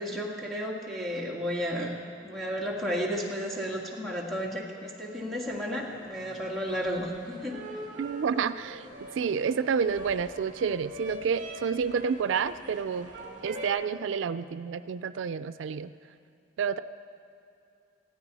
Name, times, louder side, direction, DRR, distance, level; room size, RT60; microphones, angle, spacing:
voice 1, 0.0-1.9 2.2-7.6, equal, ahead, -3 dB, 2.0 m, -33 dB
sound 1, 5.4-13.7, equal, 40° right, 2.7 m, -44 dB
voice 2, 8.0-8.9 9.1-13.1 13.4-15.9 16.6-16.8, right 6 dB, 85° right, 14 dB, 0.4 m, -29 dB
20.0 x 15.0 x 4.1 m, 2.7 s
head